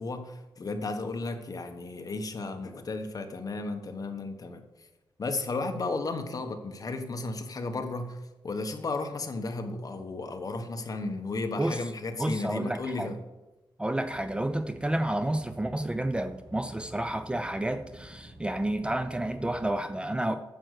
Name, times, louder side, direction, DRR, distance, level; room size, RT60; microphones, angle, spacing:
voice 1, 0.0-4.9 5.2-8.2 8.4-13.2, left 3 dB, 45° left, 6 dB, 1.3 m, -34 dB
voice 2, 12.2-13.1 13.8-20.3, right 1 dB, 10° right, 10 dB, 0.5 m, -30 dB
sound 1, 14.0-19.7, right 1 dB, 90° right, 2.9 m, -50 dB
8.9 x 7.7 x 6.6 m, 1.0 s
wide cardioid pair, 115°, 8 cm